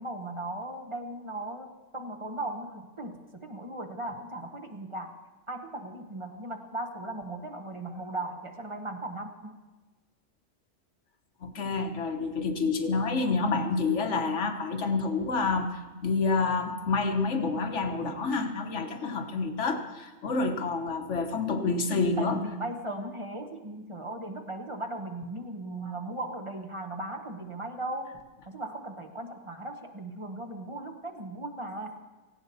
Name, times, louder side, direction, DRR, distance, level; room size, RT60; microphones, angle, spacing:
voice 1, 0.0-5.2 5.5-9.6 22.2-32.0, right 2 dB, 25° right, 4 dB, 1.1 m, -37 dB
voice 2, 11.4-22.4, left 4 dB, 75° left, 5 dB, 1.5 m, -28 dB
17.5 x 16.5 x 4.1 m, 1.2 s
omnidirectional pair, 1.2 m